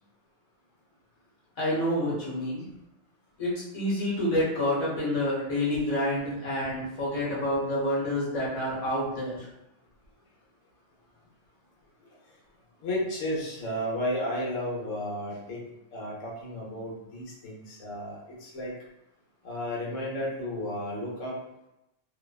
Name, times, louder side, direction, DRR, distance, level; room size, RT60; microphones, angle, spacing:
voice 1, 1.6-2.6 3.4-9.5, left 1 dB, 35° left, -6 dB, 0.9 m, -28 dB
voice 2, 12.0-12.4 12.8-18.7 19.4-21.4, left 1 dB, 90° left, -4 dB, 1.1 m, -33 dB
2.6 x 2.2 x 2.3 m, 0.88 s
omnidirectional pair, 1.2 m